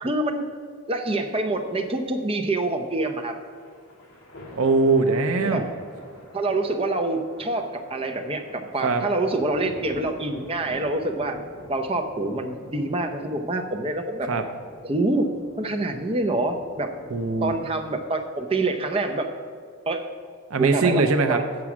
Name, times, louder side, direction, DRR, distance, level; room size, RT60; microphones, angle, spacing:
voice 1, 0.0-0.4 0.9-3.4 5.4-5.6 6.3-11.4 11.7-14.3 14.8-15.3 15.6-16.9 17.4-19.3 19.9-20.1 20.6-21.0 21.3-21.4, right 2 dB, 25° right, 4 dB, 0.6 m, -26 dB
sound 1, 1.0-17.8, left 1 dB, 55° left, 2.0 m, -46 dB
voice 2, 4.6-5.7 8.8-9.0 14.3-14.4 17.1-17.6 20.5-21.4, right 3 dB, 70° right, 7 dB, 0.6 m, -21 dB
8.5 x 6.1 x 5.9 m, 2.1 s
head